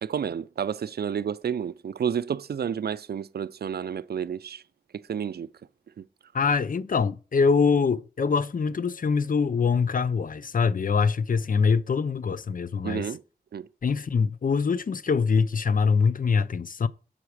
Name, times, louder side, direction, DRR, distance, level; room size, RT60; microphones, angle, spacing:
voice 1, 0.0-4.6 4.9-5.5 6.0-6.1 12.8-13.2 13.5-13.7, right 8 dB, 80° right, 0.4 m, -30 dB
voice 2, 6.3-13.1 13.8-16.9, left 5 dB, 60° left, 0.5 m, -24 dB
7.2 x 5.7 x 4.7 m
wide cardioid pair, 55°, 16 cm